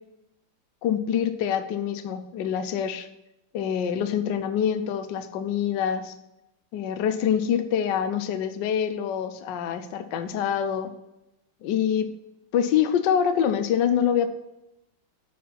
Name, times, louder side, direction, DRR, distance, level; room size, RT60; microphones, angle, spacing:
voice 1, 0.8-3.1 3.5-6.1 6.7-10.9 11.6-12.1 12.5-14.3, left 8 dB, 70° left, 9 dB, 1.3 m, -25 dB
9.3 x 4.3 x 5.8 m, 0.88 s
omnidirectional pair, 2.2 m